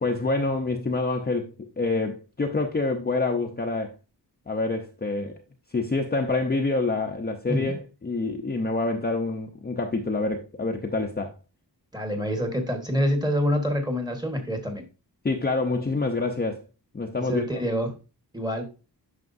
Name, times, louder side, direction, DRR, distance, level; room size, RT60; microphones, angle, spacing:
voice 1, 0.0-3.9 4.5-5.4 5.7-11.3 15.2-16.6 16.9-17.6, left 3 dB, 25° left, 0.7 m, -27 dB
voice 2, 11.9-14.9 17.3-18.0 18.3-18.6, equal, 10° right, 1.3 m, -26 dB
9.5 x 5.8 x 2.6 m
wide cardioid pair, 165°, 40 cm